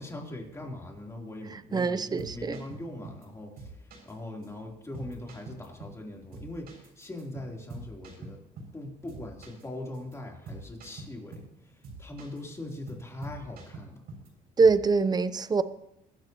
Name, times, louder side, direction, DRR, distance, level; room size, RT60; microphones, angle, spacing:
voice 1, 0.0-14.1, left 1 dB, 15° left, 3.6 m, -41 dB
voice 2, 1.7-2.6 14.6-15.6, right 4 dB, 25° right, 0.8 m, -24 dB
sound 1, 2.2-3.3 3.6-4.1 4.4-4.5 4.9-6.1 6.3-8.8 9.1-9.7 9.9-10.2 10.5-11.5 11.8-12.4 12.7-14.3 14.6-14.9, right 2 dB, 65° right, 6.8 m, -45 dB
23.5 x 13.0 x 3.1 m
cardioid pair, 110°, 17 cm